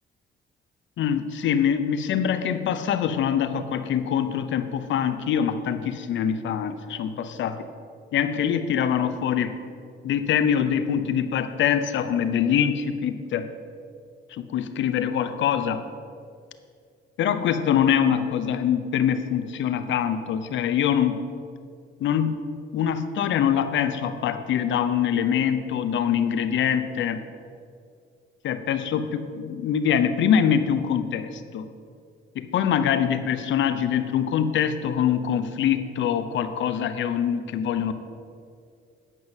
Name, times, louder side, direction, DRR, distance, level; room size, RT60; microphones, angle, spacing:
voice 1, 1.0-7.7 8.1-9.5 10.0-13.5 14.3-15.8 17.2-21.1 22.0-22.4 22.7-27.2 28.4-31.7 32.3-37.9, left 8 dB, 70° left, 10 dB, 0.8 m, -24 dB
9.2 x 5.4 x 8.0 m, 2.3 s
cardioid pair, 90°, 20 cm